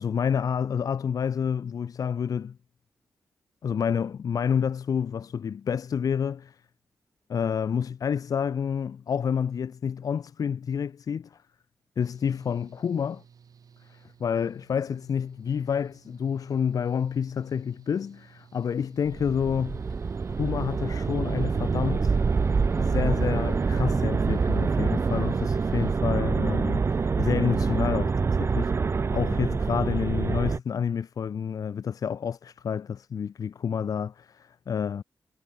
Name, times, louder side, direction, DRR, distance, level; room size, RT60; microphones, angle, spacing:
voice 1, 0.0-2.6 3.6-6.6 7.3-11.4 12.0-13.2 13.9-19.8 20.3-22.2 22.8-35.0, left 7 dB, 65° left, 0.6 m, -29 dB
Engine / Mechanical fan, 12.0-25.9, right 6 dB, 65° right, 2.1 m, -56 dB
sound 1, 19.1-30.6, right 5 dB, 40° right, 0.5 m, -26 dB
cardioid pair, 80°, 7 cm